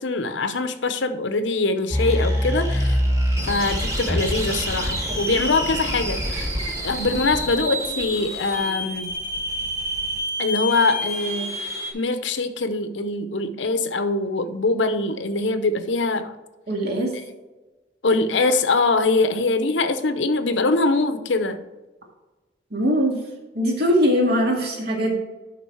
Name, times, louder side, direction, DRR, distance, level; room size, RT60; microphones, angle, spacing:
voice 1, 0.0-3.0 3.5-6.6 6.8-9.1 10.4-11.6 11.9-16.4 18.0-21.6, left 3 dB, 85° left, 10 dB, 0.8 m, -23 dB
sound 1, 1.9-11.9, equal, 15° right, 1.6 m, -26 dB
voice 2, 16.7-17.1 22.7-23.2 23.5-25.2, equal, 65° right, -1 dB, 2.1 m, -21 dB
11.0 x 3.8 x 4.6 m, 1.1 s
head